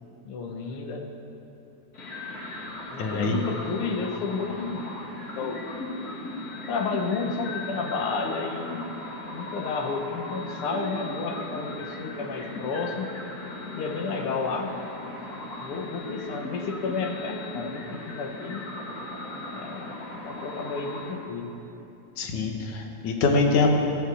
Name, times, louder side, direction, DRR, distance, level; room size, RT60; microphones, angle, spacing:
voice 1, 0.2-1.1 2.9-4.8 5.2-5.6 6.7-8.9 9.3-13.1 13.7-14.7 15.0-15.2 15.6-18.6 19.5-19.9 20.2-21.5, left 4 dB, 60° left, 3 dB, 1.7 m, -31 dB
sound 1, 1.9-21.1, left 2 dB, 35° left, 2.0 m, -38 dB
voice 2, 3.0-3.5 22.2-23.7, left 3 dB, 75° left, 2 dB, 2.8 m, -24 dB
16.0 x 8.9 x 7.8 m, 2.8 s
omnidirectional pair, 3.6 m